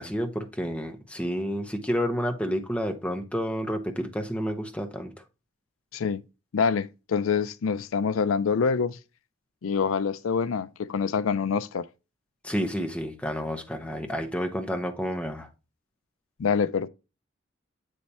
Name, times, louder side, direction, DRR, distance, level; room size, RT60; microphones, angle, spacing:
voice 1, 0.0-5.1 12.4-15.5, equal, 5° left, 1.0 m, -30 dB
voice 2, 6.5-9.0 9.6-11.9 16.4-16.9, left 6 dB, 90° left, 0.4 m, -26 dB
8.4 x 3.2 x 4.1 m
head